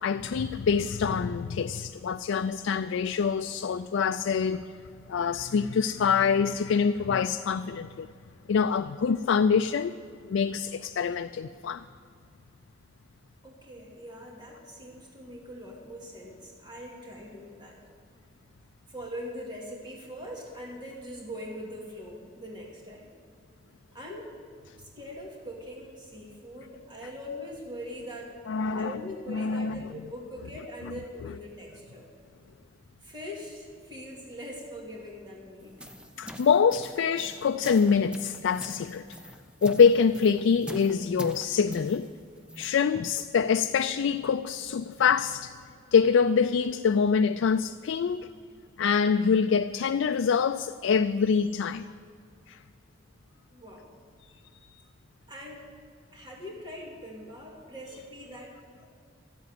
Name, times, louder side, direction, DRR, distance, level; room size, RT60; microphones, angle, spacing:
voice 1, 0.0-4.7 5.1-8.1 8.5-9.9 10.3-11.8 28.5-29.0 29.3-29.8 36.2-39.0 39.6-42.1 42.6-45.5 45.9-48.3 48.8-51.9 52.5-52.6, left 6 dB, 75° left, 9 dB, 0.4 m, -25 dB
voice 2, 13.4-17.8 18.9-23.2 23.9-24.3 24.8-28.4 28.7-32.1 33.0-35.8 53.5-53.9 55.3-55.7 56.1-58.9, equal, 20° right, -2 dB, 2.2 m, -42 dB
sound 1, 35.6-42.8, equal, 5° right, 0.7 m, -44 dB
14.0 x 8.0 x 9.3 m, 2.3 s
head